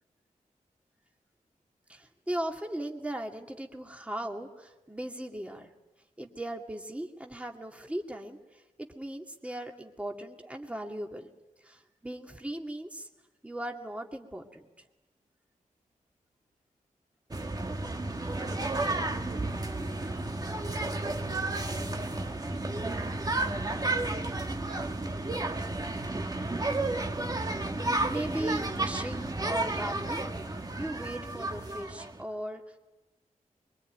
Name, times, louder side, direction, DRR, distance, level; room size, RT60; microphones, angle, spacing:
voice 1, 1.9-5.7 6.2-11.3 11.6-13.1 13.4-14.7 27.5-30.2 30.8-32.8, right 1 dB, 10° right, 2 dB, 2.3 m, -38 dB
sound 1, 17.3-32.2, right 2 dB, 25° right, 1.7 m, -32 dB
voice 2, 18.4-19.6 20.5-22.8 23.7-24.3 24.7-25.7, right 4 dB, 90° right, 0 dB, 3.4 m, -49 dB
24.0 x 23.0 x 9.3 m, 1.0 s
wide cardioid pair, 85°, 14 cm